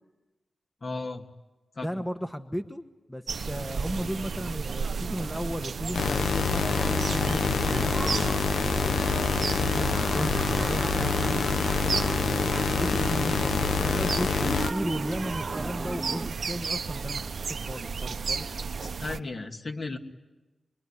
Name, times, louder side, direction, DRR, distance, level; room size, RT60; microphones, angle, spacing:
voice 1, 0.8-1.2 1.8-1.9 13.8-14.6 18.8-20.0, left 3 dB, 45° left, 4 dB, 2.5 m, -35 dB
voice 2, 1.8-2.8 3.1-9.0 9.4-12.0 12.5-18.5 19.1-19.2, equal, 5° left, 7 dB, 1.3 m, -35 dB
sound 1, 3.3-19.2, right 5 dB, 65° right, 1.1 m, -34 dB
sound 2, 5.9-14.7, left 5 dB, 85° left, 1.2 m, -26 dB
sound 3, 6.6-16.3, right 3 dB, 35° right, 0.9 m, -35 dB
26.0 x 23.0 x 10.0 m, 1.1 s
cardioid pair, 75°, 0 cm